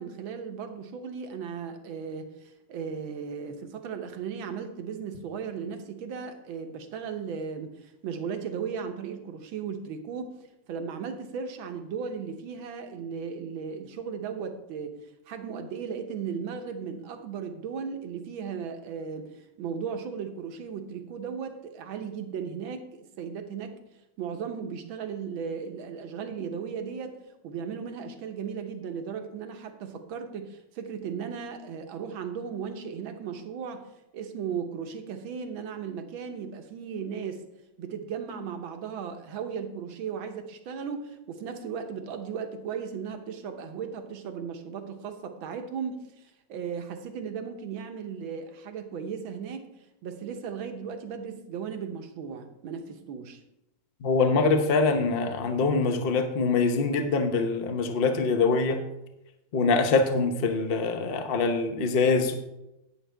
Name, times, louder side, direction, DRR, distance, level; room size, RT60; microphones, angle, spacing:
voice 1, 0.0-10.4 10.7-15.0 15.3-23.8 24.2-27.2 27.4-33.8 34.1-37.4 37.8-49.7 50.0-53.4, right 6 dB, 75° right, 7 dB, 1.8 m, -36 dB
voice 2, 54.0-58.8 59.5-62.4, left 4 dB, 45° left, 7 dB, 0.8 m, -24 dB
10.0 x 9.4 x 3.4 m, 0.91 s
omnidirectional pair, 2.2 m